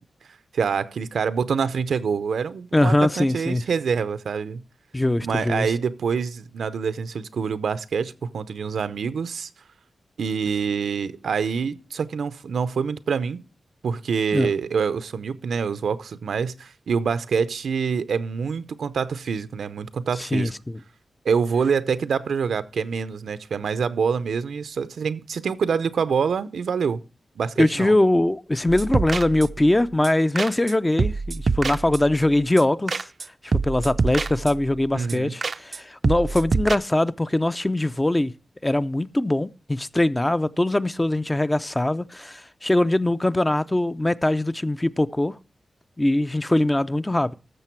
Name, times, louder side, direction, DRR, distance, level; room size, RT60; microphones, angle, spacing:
voice 1, 0.5-4.6 5.2-9.5 10.2-13.5 13.8-20.5 21.2-27.0 27.4-27.9 34.9-35.3, right 6 dB, 90° right, 0.6 m, -26 dB
voice 2, 2.7-3.6 4.9-5.7 14.3-14.5 20.2-20.8 27.6-33.1 33.4-38.3 38.6-45.3 46.0-47.3, left 1 dB, 15° left, 0.4 m, -22 dB
sound 1, 28.7-29.7 30.0-30.1 30.4-30.7 31.0-32.2 32.6-32.7 32.9-33.3 33.5-34.7 35.1-35.2 35.4-35.8 36.0-36.8, right 4 dB, 45° right, 0.4 m, -26 dB
13.0 x 6.6 x 4.5 m
wide cardioid pair, 120°, 0 cm